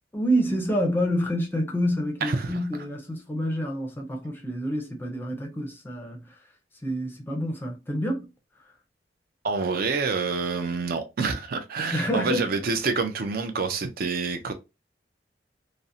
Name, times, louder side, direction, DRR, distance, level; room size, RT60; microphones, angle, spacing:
voice 1, 0.1-6.4 6.8-8.3 11.9-12.5, equal, 10° left, 0.5 m, -28 dB
voice 2, 2.2-2.6 9.4-14.5, right 4 dB, 55° right, 0.4 m, -27 dB
2.5 x 2.0 x 2.6 m
head